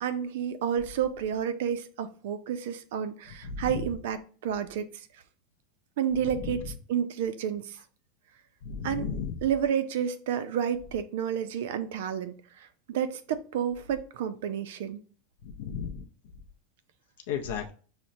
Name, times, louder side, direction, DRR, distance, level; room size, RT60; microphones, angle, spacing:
voice 1, 0.0-4.8 6.0-7.8 8.8-9.1 9.4-15.0, right 8 dB, 65° right, 11 dB, 0.4 m, -30 dB
voice 2, 3.4-3.8 6.2-6.7 8.6-9.4 15.4-16.1 17.3-17.7, left 7 dB, 70° left, 3 dB, 0.5 m, -34 dB
5.8 x 2.1 x 2.6 m, 0.41 s
supercardioid pair, 175°, 0 cm